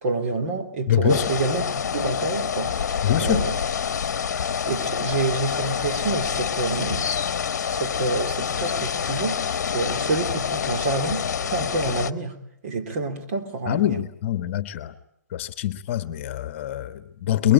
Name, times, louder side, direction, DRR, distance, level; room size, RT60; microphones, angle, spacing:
voice 1, 0.0-1.6 1.9-3.6 4.6-7.1 7.6-9.4 9.7-12.3 12.6-14.0, right 3 dB, 45° right, 3.2 m, -28 dB
voice 2, 0.9-1.2 3.0-3.4 13.7-14.9 15.3-17.5, left 12 dB, 40° left, 1.2 m, -24 dB
sound 1, 1.1-12.1, left 7 dB, 60° left, 1.0 m, -27 dB
23.0 x 22.0 x 8.8 m
hypercardioid pair, 135°, 10 cm